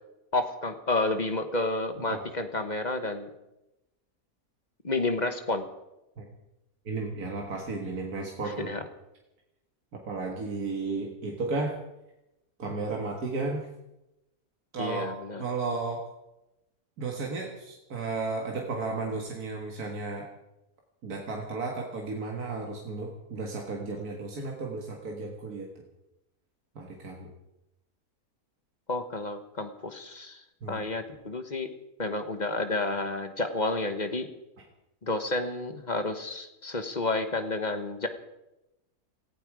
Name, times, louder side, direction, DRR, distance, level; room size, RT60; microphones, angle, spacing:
voice 1, 0.3-3.3 4.8-5.7 8.4-8.8 14.8-15.4 28.9-31.7 32.0-34.3 35.0-38.1, left 2 dB, 30° left, 7 dB, 1.3 m, -30 dB
voice 2, 6.9-8.7 9.9-11.8 12.6-13.7 14.7-15.1 15.4-16.1 17.0-20.3 21.0-25.9 26.8-27.3 30.6-30.8, right 3 dB, 80° right, 0 dB, 2.2 m, -34 dB
18.0 x 15.0 x 4.9 m, 0.93 s
omnidirectional pair, 1.6 m